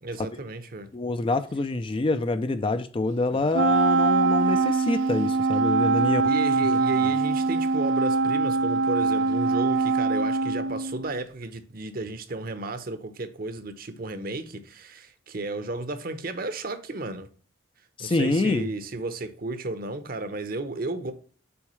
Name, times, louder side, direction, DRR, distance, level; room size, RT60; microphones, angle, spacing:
voice 1, 0.0-0.9 3.3-3.7 5.8-17.3 18.0-21.1, right 2 dB, 45° right, 0.8 m, -33 dB
voice 2, 0.9-6.3 18.0-18.7, left 3 dB, 25° left, 0.4 m, -26 dB
Wind instrument woodwind instrument, 3.5-11.2, right 3 dB, 65° right, 0.4 m, -23 dB
7.0 x 4.4 x 3.0 m
head